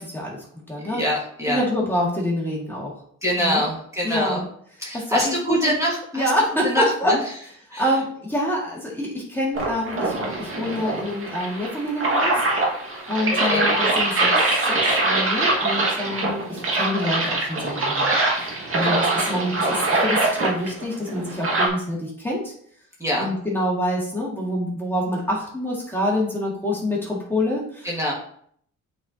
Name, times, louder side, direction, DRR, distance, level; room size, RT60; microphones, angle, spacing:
voice 1, 0.0-1.0 1.5-2.9 3.4-3.6 4.0-4.5 4.9-5.8 6.1-7.1 7.8-12.4 13.1-18.1 18.4-22.5 23.2-28.1, left 1 dB, 5° left, -5 dB, 2.3 m, -26 dB
voice 2, 0.9-1.6 3.2-4.4 4.8-6.3 6.6-7.2 7.7-7.9 13.3-13.6 23.0-23.3 27.8-28.1, left 1 dB, 10° right, -5 dB, 2.3 m, -24 dB
sound 1, 9.5-21.7, right 2 dB, 45° right, 2.1 m, -23 dB
8.4 x 4.6 x 3.0 m, 0.62 s
cardioid pair, 90°, 30 cm